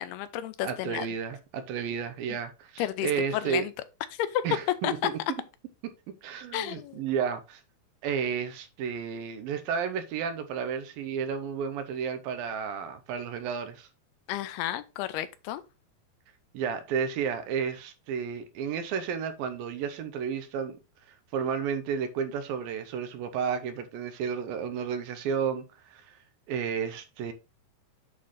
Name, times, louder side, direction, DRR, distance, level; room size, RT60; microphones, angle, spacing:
voice 1, 0.0-1.1 2.8-3.7 4.2-4.4 4.8-4.9 6.5-7.0 14.3-15.6, left 12 dB, 85° left, 2.7 m, -32 dB
voice 2, 0.6-3.7 4.4-5.2 6.2-7.6 8.0-13.9 16.5-20.8 21.3-26.1 26.5-27.3, right 7 dB, 75° right, 2.6 m, -32 dB
8.6 x 3.9 x 4.8 m
omnidirectional pair, 4.5 m